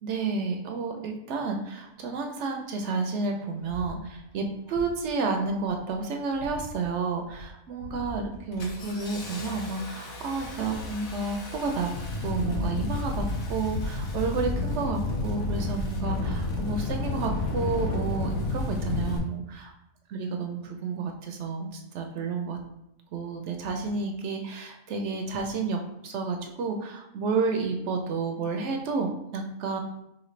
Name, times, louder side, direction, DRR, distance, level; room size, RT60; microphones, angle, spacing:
voice 1, 0.0-11.9 12.2-19.7 20.1-22.6 23.1-29.8, right 4 dB, 65° right, 3 dB, 0.8 m, -31 dB
Engine starting, 2.8-2.9 3.7-4.0 4.7-5.0 5.4-5.9 6.3-6.9 7.3-7.5 7.8-19.2, left 2 dB, 80° left, 1.3 m, -32 dB
4.9 x 2.9 x 3.1 m, 0.84 s
omnidirectional pair, 1.5 m